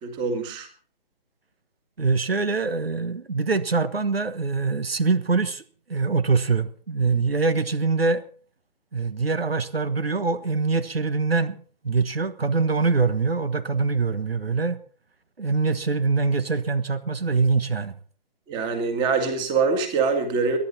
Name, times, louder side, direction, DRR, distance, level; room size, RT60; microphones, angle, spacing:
voice 1, 0.0-0.7 18.5-20.6, right 4 dB, 15° right, 2.0 m, -24 dB
voice 2, 2.0-5.6 5.9-8.3 8.9-14.8 15.4-18.0, right 4 dB, 85° right, 1.4 m, -24 dB
22.5 x 11.0 x 4.2 m
figure-of-eight pair, 150°, 29 cm